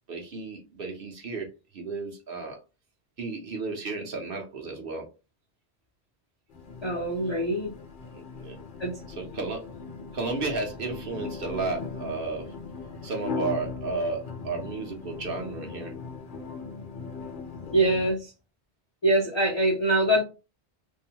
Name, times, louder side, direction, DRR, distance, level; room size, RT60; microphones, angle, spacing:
voice 1, 0.1-1.5 1.7-2.6 3.2-5.1 8.1-8.6 9.2-9.7 10.1-12.5 13.0-15.9, right 3 dB, 60° right, 0.9 m, -33 dB
sound 1, 6.5-18.1, left 5 dB, 55° left, 0.8 m, -39 dB
voice 2, 6.8-7.7 8.8-9.0 17.7-18.3 19.0-20.2, right 1 dB, 35° left, 0.4 m, -24 dB
2.6 x 2.1 x 2.7 m
omnidirectional pair, 1.1 m